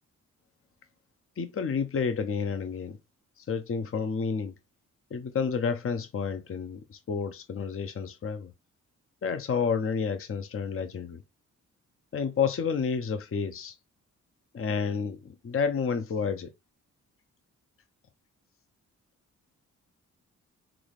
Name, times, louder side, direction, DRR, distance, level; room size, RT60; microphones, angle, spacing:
voice 1, 1.4-3.0 3.4-4.5 5.1-8.5 9.2-11.2 12.1-13.7 14.5-16.5, left 6 dB, 40° left, 0.8 m, -30 dB
6.1 x 2.4 x 3.3 m
cardioid pair, 60°, 32 cm